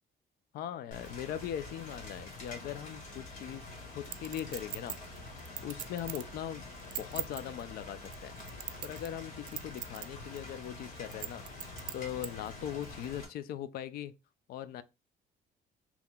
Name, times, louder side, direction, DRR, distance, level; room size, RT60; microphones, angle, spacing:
voice 1, 0.5-3.7 3.9-5.0 5.6-6.6 7.0-8.4 8.8-11.4 11.9-14.1 14.5-14.8, left 10 dB, 70° left, 0.4 m, -40 dB
Rain, 0.9-13.2, left 2 dB, 50° left, 2.0 m, -46 dB
Chink clink, 4.1-6.3 6.8-7.4 8.1-9.2 9.5-10.1 10.4-10.5 11.1-12.3 12.8-12.9, right 12 dB, 55° right, 0.4 m, -40 dB
5.5 x 3.0 x 2.2 m
cardioid pair, 155°, 17 cm